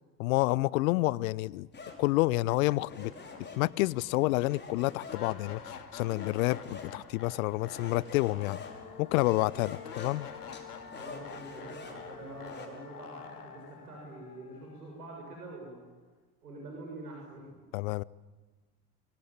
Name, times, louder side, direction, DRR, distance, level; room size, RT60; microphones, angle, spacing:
voice 1, 0.2-1.7 2.0-3.1 3.6-8.6 9.0-10.3 17.7-18.0, left 20 dB, 65° left, 23 dB, 0.8 m, -29 dB
sound 1, 1.7-12.7, left 4 dB, 25° left, 5.3 m, -48 dB
sound 2, 2.0-2.1 2.5-15.5, left 6 dB, 85° left, 2.2 m, -48 dB
voice 2, 10.9-15.8 16.4-17.4, right 2 dB, 85° right, -1 dB, 6.9 m, -45 dB
26.0 x 23.5 x 8.9 m, 1.3 s
hypercardioid pair, 70°, 45 cm